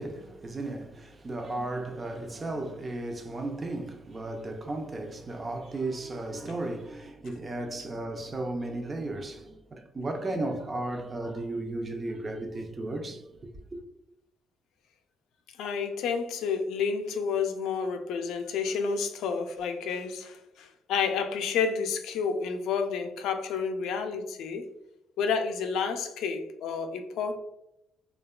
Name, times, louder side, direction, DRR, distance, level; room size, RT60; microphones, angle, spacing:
voice 1, 0.0-13.2 13.7-13.8, right 2 dB, 30° right, 0.4 m, -35 dB
voice 2, 15.6-24.7 25.2-27.4, left 6 dB, 85° left, 0.3 m, -30 dB
2.8 x 2.2 x 2.3 m
cardioid pair, 90°, 0 cm